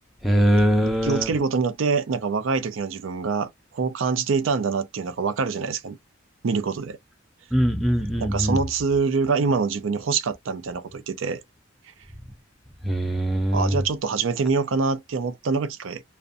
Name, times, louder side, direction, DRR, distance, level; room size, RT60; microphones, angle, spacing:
voice 1, 0.2-1.3 7.5-8.6 12.8-13.8, equal, ahead, 0.3 m, -21 dB
voice 2, 0.8-6.0 6.4-7.0 8.2-11.4 13.5-16.0, right 4 dB, 85° right, 0.5 m, -25 dB
2.5 x 2.1 x 2.4 m
head